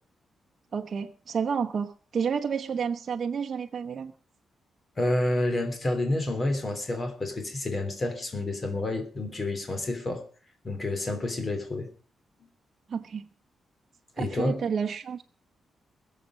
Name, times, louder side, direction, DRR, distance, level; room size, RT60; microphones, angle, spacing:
voice 1, 0.7-4.1 12.9-13.3 14.2-15.2, right 6 dB, 45° right, 1.0 m, -30 dB
voice 2, 5.0-10.2 10.6-11.9 14.2-14.6, left 2 dB, 25° left, 3.1 m, -29 dB
21.5 x 7.5 x 5.2 m
wide cardioid pair, 140°, 0 cm